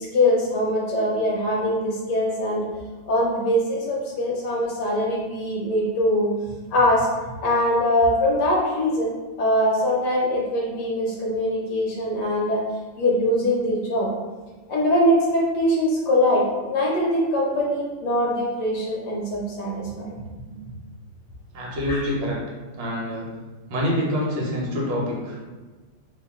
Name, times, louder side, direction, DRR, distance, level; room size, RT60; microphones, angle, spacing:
voice 1, 0.0-2.7 3.1-6.3 6.6-9.1 9.4-12.6 13.0-14.1 14.7-20.6 21.9-22.1, left 1 dB, 65° left, -4 dB, 1.1 m, -22 dB
voice 2, 21.5-22.4 22.8-23.3 23.7-25.4, equal, 65° right, -3 dB, 1.5 m, -26 dB
3.1 x 2.8 x 3.5 m, 1.3 s
omnidirectional pair, 2.3 m